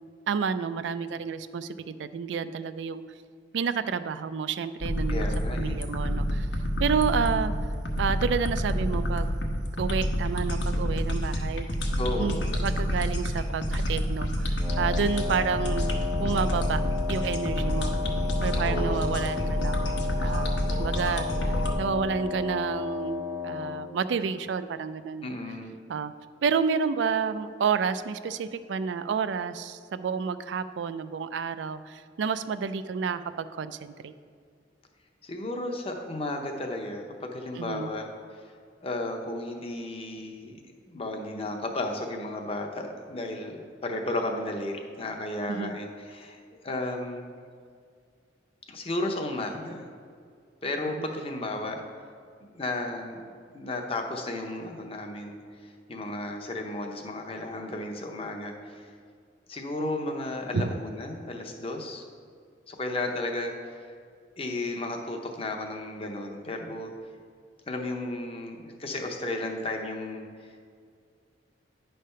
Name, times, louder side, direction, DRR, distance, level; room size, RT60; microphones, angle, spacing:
voice 1, 0.3-3.0 3.5-6.5 6.8-7.5 8.0-9.3 9.8-11.7 12.2-15.9 16.2-16.8 17.1-18.0 18.4-25.3 25.9-26.1 26.4-34.1 37.6-37.9 45.5-45.7 51.0-51.1 60.5-60.8, right 6 dB, 75° right, 12 dB, 0.3 m, -30 dB
sound 1, 4.8-21.7, equal, 70° left, 1.0 m, -28 dB
voice 2, 5.1-5.8 12.0-12.6 18.5-19.0 25.2-25.7 35.2-38.1 38.8-40.6 40.9-43.6 43.8-47.2 48.7-49.9 50.6-51.8 52.4-53.3 53.5-55.4 55.6-58.9 59.5-62.0 62.7-63.9 64.4-66.9 67.7-70.2, left 2 dB, 30° left, 3 dB, 0.7 m, -33 dB
Wind instrument woodwind instrument, 14.6-23.9, left 7 dB, 5° right, 0.6 m, -34 dB
10.0 x 3.4 x 5.5 m, 2.2 s
head